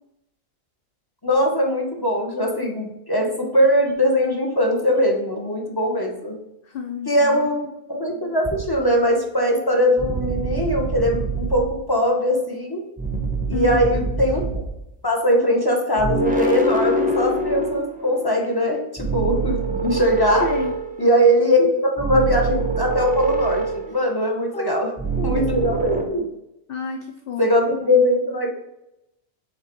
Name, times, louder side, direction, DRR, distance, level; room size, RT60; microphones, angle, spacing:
voice 1, 1.2-6.4 7.1-12.8 13.5-14.6 15.0-20.5 21.0-24.9 25.2-26.3 27.4-28.5, equal, 20° left, 0 dB, 0.9 m, -21 dB
voice 2, 6.7-7.5 13.5-13.8 20.4-20.7 24.5-25.5 26.7-27.5 27.9-28.0, left 5 dB, 65° left, 5 dB, 0.5 m, -30 dB
sound 1, 8.4-8.9 10.0-11.9 13.0-14.9 16.0-18.4 19.0-21.3 22.0-24.3 25.0-26.0, right 3 dB, 10° right, 0.5 m, -25 dB
6.6 x 3.8 x 4.5 m, 0.88 s
omnidirectional pair, 1.5 m